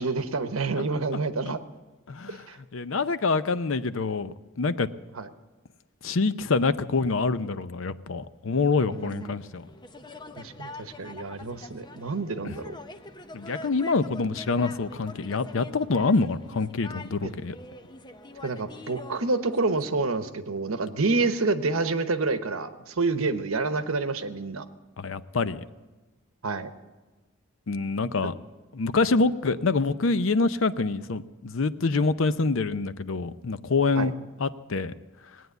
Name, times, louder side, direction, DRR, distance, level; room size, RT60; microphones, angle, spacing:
voice 1, 0.0-1.6 2.3-2.6 5.2-5.3 8.8-9.4 10.4-12.7 17.2-17.3 18.4-24.6 26.4-26.7 34.0-34.1, right 3 dB, 80° right, 10 dB, 1.0 m, -28 dB
voice 2, 0.8-1.2 2.1-2.4 2.7-4.9 6.0-9.7 12.4-12.6 13.3-17.6 25.0-25.6 27.7-28.3 28.7-34.1 34.4-34.9, left 3 dB, 65° left, 13 dB, 0.6 m, -26 dB
sound 1, 8.9-19.9, left 2 dB, 20° left, 0.6 m, -45 dB
19.0 x 9.3 x 8.1 m, 1.2 s
head